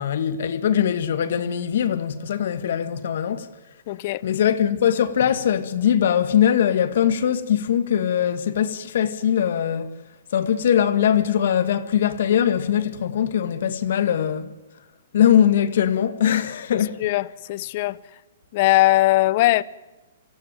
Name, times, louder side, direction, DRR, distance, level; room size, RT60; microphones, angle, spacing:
voice 1, 0.0-3.5 4.2-9.9 10.3-14.5 15.1-17.0, left 9 dB, 65° left, 2.1 m, -21 dB
voice 2, 3.9-4.2 16.7-18.0 18.5-19.6, left 18 dB, 45° left, 0.9 m, -20 dB
25.5 x 15.5 x 9.1 m
hypercardioid pair, 135°, 0 cm